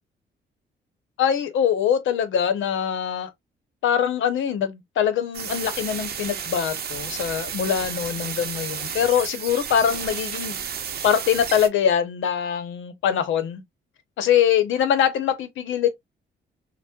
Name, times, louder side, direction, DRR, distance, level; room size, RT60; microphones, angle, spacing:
voice 1, 1.2-3.3 3.8-10.6 11.0-13.6 14.2-15.9, left 8 dB, 80° left, 0.7 m, -23 dB
sound 1, 5.3-11.7, right 7 dB, 55° right, 0.6 m, -32 dB
4.2 x 2.1 x 2.3 m
cardioid pair, 85°, 20 cm